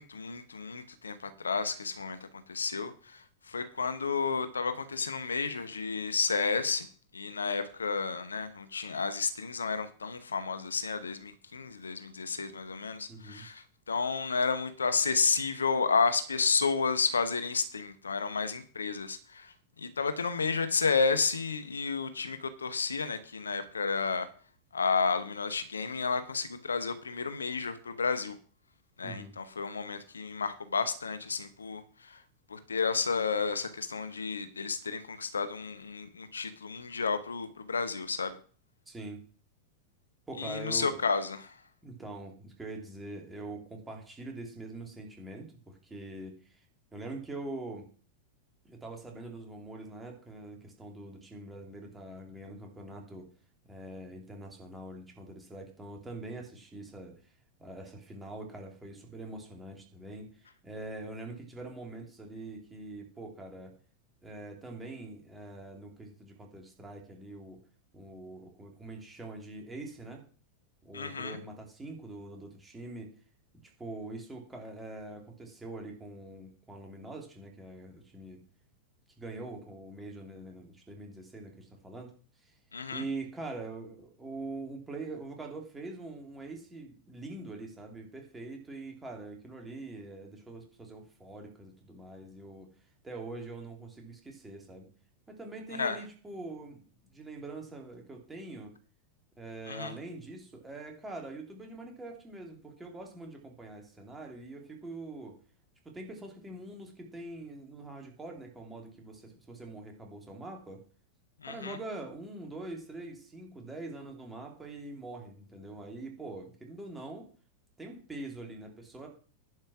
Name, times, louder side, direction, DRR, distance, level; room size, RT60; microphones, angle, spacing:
voice 1, 0.0-6.9 7.1-24.3 24.7-28.4 29.0-32.2 32.5-38.4 40.4-41.5 70.9-71.4 82.7-83.0 95.8-96.0 99.7-100.0 111.4-111.8, left 5 dB, 75° left, 11 dB, 0.9 m, -31 dB
voice 2, 13.1-13.5 29.0-29.3 38.9-39.2 40.3-41.0 41.8-46.6 46.9-47.9 48.6-53.3 53.6-57.3 57.6-63.8 64.2-67.6 67.9-70.2 70.8-73.1 73.6-78.4 79.2-82.1 82.4-82.5 82.9-92.7 93.0-94.9 95.3-98.7 99.4-105.4 105.8-110.8 111.5-117.3 117.8-119.1, right 2 dB, 10° right, 1 dB, 3.0 m, -44 dB
10.5 x 5.5 x 6.1 m, 0.41 s
figure-of-eight pair, 90°, 0 cm